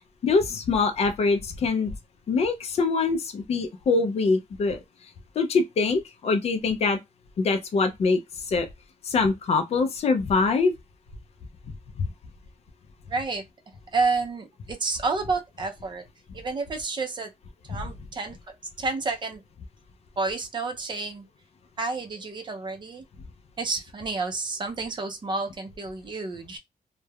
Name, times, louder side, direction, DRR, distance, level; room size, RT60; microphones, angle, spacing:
voice 1, 0.0-1.9 2.3-4.8 5.4-7.0 7.4-8.2 8.4-8.7 9.0-10.7 12.0-12.1 17.7-17.8, left 4 dB, 50° left, 0.4 m, -24 dB
voice 2, 13.1-13.4 13.9-16.0 16.3-17.3 17.7-18.4 18.8-19.4 20.2-21.3 21.8-23.1 23.6-26.6, right 3 dB, 35° right, 0.5 m, -30 dB
3.1 x 2.1 x 2.2 m
wide cardioid pair, 170°, 14 cm